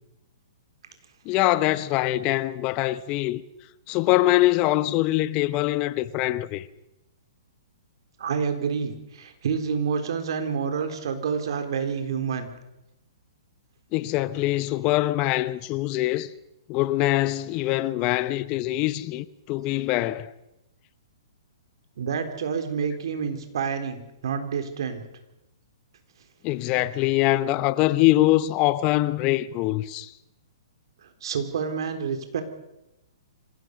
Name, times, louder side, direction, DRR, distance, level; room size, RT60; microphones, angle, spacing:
voice 1, 1.2-3.4 3.9-6.6 13.9-16.3 16.7-20.3 26.4-30.1, left 16 dB, 35° left, 1.0 m, -23 dB
voice 2, 8.2-12.5 22.0-25.0 31.0-32.4, right 6 dB, 65° right, 3.8 m, -28 dB
26.0 x 16.5 x 6.7 m
hypercardioid pair, 125°, 3 cm